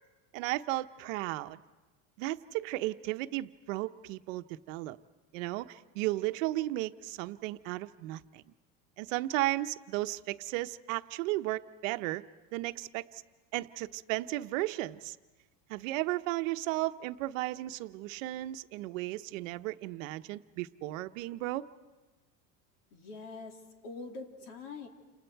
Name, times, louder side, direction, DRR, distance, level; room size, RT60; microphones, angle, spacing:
voice 1, 0.3-1.6 2.2-5.0 5.3-8.4 9.0-12.2 12.5-13.2 13.5-15.2 15.7-21.7, right 17 dB, 80° right, 10 dB, 0.9 m, -34 dB
voice 2, 22.9-24.9, left 3 dB, 65° left, 3 dB, 3.1 m, -44 dB
29.5 x 27.5 x 4.6 m, 1.2 s
cardioid pair, 180°, 38 cm